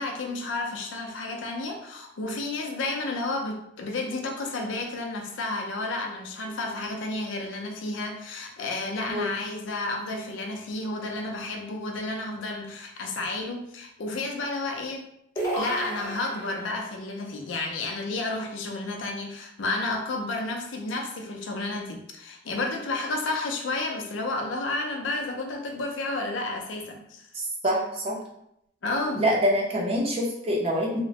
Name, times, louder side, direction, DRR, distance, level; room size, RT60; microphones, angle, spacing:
voice 1, 0.0-15.1 15.6-27.2 28.8-29.2, left 2 dB, 80° left, 2 dB, 0.5 m, -31 dB
sound 1, 15.4-16.9, right 1 dB, 15° left, 0.6 m, -32 dB
voice 2, 27.3-28.2 29.2-31.0, equal, 30° right, -3 dB, 0.6 m, -25 dB
3.0 x 2.1 x 2.7 m, 0.76 s
head